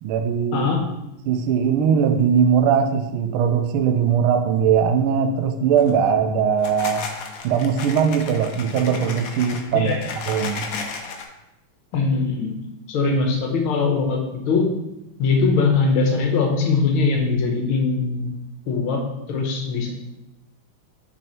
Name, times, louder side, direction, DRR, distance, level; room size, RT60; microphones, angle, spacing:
voice 1, 0.0-0.7 1.3-7.1 7.4-9.9 10.2-10.7, right 7 dB, 90° right, 7 dB, 1.5 m, -20 dB
sound 1, 5.7-6.1 6.5-11.2, left 4 dB, 60° left, 0.9 m, -34 dB
voice 2, 9.7-10.1 11.9-12.5 12.9-14.7 15.2-18.4 18.7-19.0 19.3-19.9, left 4 dB, 80° left, 2 dB, 1.8 m, -21 dB
6.2 x 4.6 x 4.3 m, 0.92 s
omnidirectional pair, 2.3 m